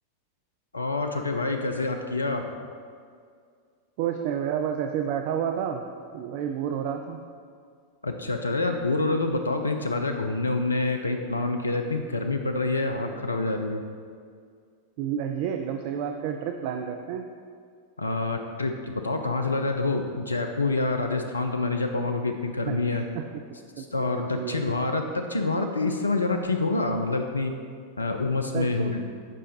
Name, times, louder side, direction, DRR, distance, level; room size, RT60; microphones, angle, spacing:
voice 1, 0.7-2.5 8.0-13.8 18.0-23.0 23.8-27.5 28.0-29.0, left 3 dB, 80° left, 5 dB, 0.4 m, -27 dB
voice 2, 4.0-5.8 6.1-7.2 15.0-17.2 22.7-23.2 23.8-24.7 28.5-28.9, right 8 dB, 45° right, 4 dB, 0.3 m, -30 dB
7.4 x 4.9 x 2.7 m, 2.1 s
figure-of-eight pair, 90°, 0 cm